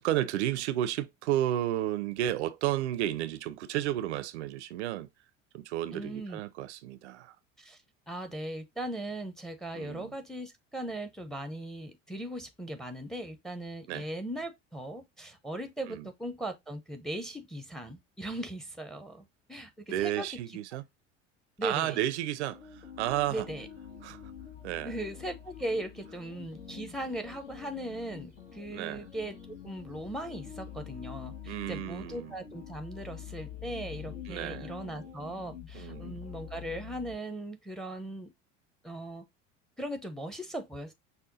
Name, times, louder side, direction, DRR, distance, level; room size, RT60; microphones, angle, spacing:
voice 1, 0.0-5.1 5.5-7.4 9.7-10.1 13.9-14.1 15.9-16.1 19.9-20.8 21.6-23.5 24.0-24.2 24.6-25.0 28.7-29.0 31.5-32.3 34.3-34.7 35.7-36.2, right 13 dB, 65° right, 0.5 m, -32 dB
voice 2, 5.9-6.4 7.6-7.8 8.1-20.4 21.6-22.0 23.3-23.7 24.8-29.4 29.6-38.3 38.8-39.2 39.8-40.9, right 1 dB, ahead, 0.6 m, -38 dB
sound 1, 22.4-37.2, left 8 dB, 70° left, 1.6 m, -46 dB
5.6 x 2.1 x 3.8 m
figure-of-eight pair, 70°, 37 cm